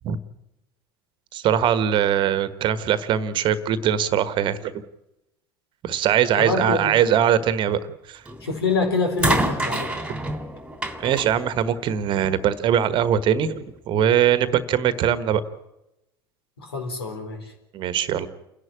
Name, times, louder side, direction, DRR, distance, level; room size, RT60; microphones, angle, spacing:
voice 1, 1.3-4.8 5.8-7.8 8.1-8.2 11.0-15.4 17.7-18.3, right 9 dB, 40° right, 14 dB, 1.4 m, -21 dB
voice 2, 6.4-7.0 8.4-9.9 16.6-17.4, left 3 dB, 75° left, 5 dB, 4.3 m, -25 dB
sound 1, 8.3-8.6 9.2-12.5 13.5-13.6, right 1 dB, 5° right, 2.6 m, -28 dB
29.0 x 11.0 x 9.9 m, 0.92 s
figure-of-eight pair, 75°, 13 cm